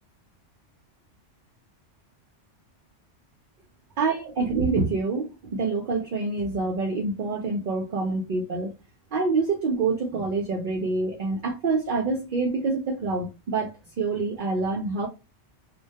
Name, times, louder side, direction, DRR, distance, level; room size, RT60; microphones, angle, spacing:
voice 1, 4.0-8.7 9.1-13.7 14.0-15.1, right 3 dB, 60° right, 0.5 m, -26 dB
2.2 x 2.1 x 2.7 m
omnidirectional pair, 1.2 m